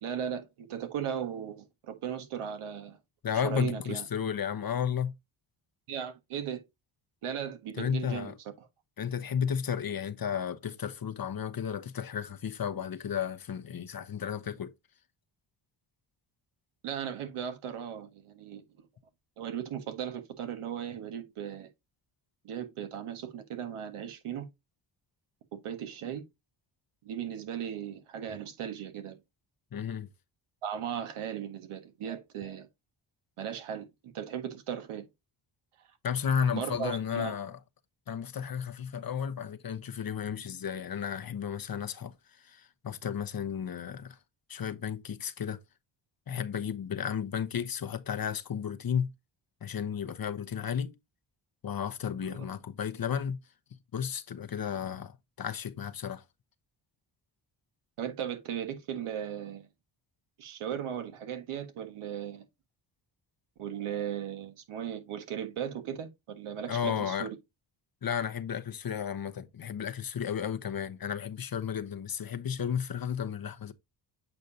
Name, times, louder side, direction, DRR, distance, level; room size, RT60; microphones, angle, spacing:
voice 1, 0.0-3.0 3.4-4.0 5.9-6.6 7.2-8.3 8.6-8.7 16.8-18.6 19.4-21.7 22.4-24.5 25.5-26.2 27.0-29.2 30.6-32.7 33.4-35.1 36.5-37.4 52.2-52.4 58.0-59.7 60.4-62.4 63.6-67.4, right 9 dB, 80° right, 1.6 m, -37 dB
voice 2, 3.2-5.1 7.8-8.3 9.0-14.7 29.7-30.1 36.0-37.6 38.1-44.2 44.5-45.6 46.3-49.1 49.6-50.9 51.6-53.4 53.9-56.2 66.7-67.3 68.0-73.7, left 8 dB, 45° left, 0.9 m, -33 dB
8.1 x 5.1 x 2.7 m
supercardioid pair, 55°, 50 cm